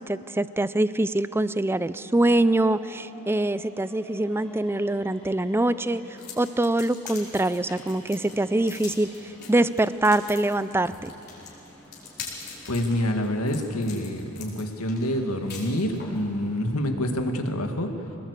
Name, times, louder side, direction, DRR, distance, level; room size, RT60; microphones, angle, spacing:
voice 1, 0.0-11.1, right 1 dB, 10° right, 14 dB, 0.4 m, -24 dB
sound 1, 2.3-16.9, equal, 5° left, 3.1 m, -51 dB
sound 2, 6.2-16.2, left 5 dB, 45° left, 4.7 m, -42 dB
voice 2, 12.7-17.9, left 1 dB, 80° left, 4 dB, 2.1 m, -27 dB
26.0 x 19.5 x 8.2 m, 3.0 s
head